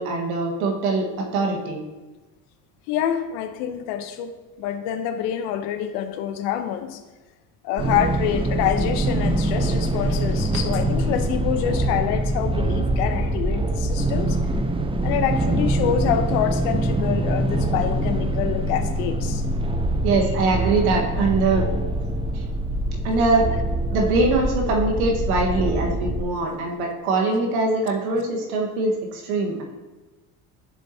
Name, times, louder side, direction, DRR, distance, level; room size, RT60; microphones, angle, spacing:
voice 1, 0.0-1.8 10.5-10.6 20.0-21.6 22.3-22.4 23.0-23.5 23.9-29.6, right 3 dB, 90° right, 0 dB, 1.6 m, -22 dB
voice 2, 2.9-7.0 7.6-14.4 15.0-19.4, left 10 dB, 75° left, 9 dB, 0.9 m, -26 dB
sound 1, 7.8-26.2, right 1 dB, 15° right, 0.6 m, -24 dB
10.5 x 7.3 x 2.8 m, 1.2 s
supercardioid pair, 75°, 42 cm